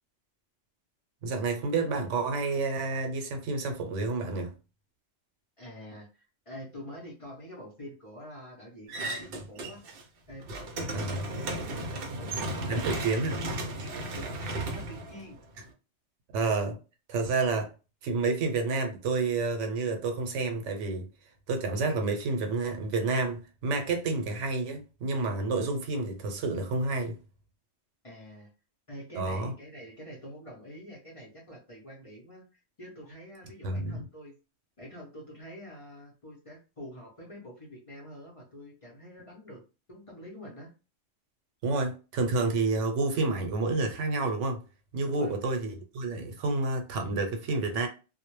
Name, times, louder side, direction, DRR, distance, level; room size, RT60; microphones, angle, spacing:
voice 1, 1.2-4.5 10.9-11.3 12.7-13.4 16.3-16.8 17.1-17.7 18.0-21.1 21.5-27.2 29.1-29.5 33.6-34.0 41.6-44.6 44.9-47.9, right 3 dB, 90° right, 0.9 m, -29 dB
voice 2, 5.6-9.8 10.3-12.9 14.0-15.4 28.0-28.5 28.9-34.3 34.8-39.6 39.9-40.7 45.0-45.3, equal, 35° left, 0.6 m, -46 dB
sound 1, 8.9-10.0 10.3-15.7, right 2 dB, 60° right, 0.7 m, -35 dB
2.2 x 2.0 x 3.0 m
omnidirectional pair, 1.2 m